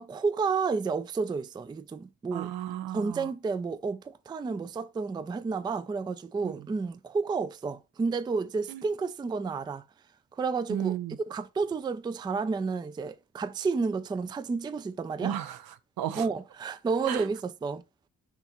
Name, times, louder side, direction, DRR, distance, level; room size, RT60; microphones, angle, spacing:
voice 1, 0.0-2.5 2.9-9.8 10.4-11.0 11.3-15.3 16.2-17.8, right 4 dB, 15° right, 0.3 m, -31 dB
voice 2, 2.3-3.3 6.4-6.7 8.7-8.8 10.7-11.2 15.2-16.3 17.0-17.3, right 11 dB, 70° right, 0.6 m, -34 dB
5.8 x 2.9 x 3.0 m
cardioid pair, 65°, 37 cm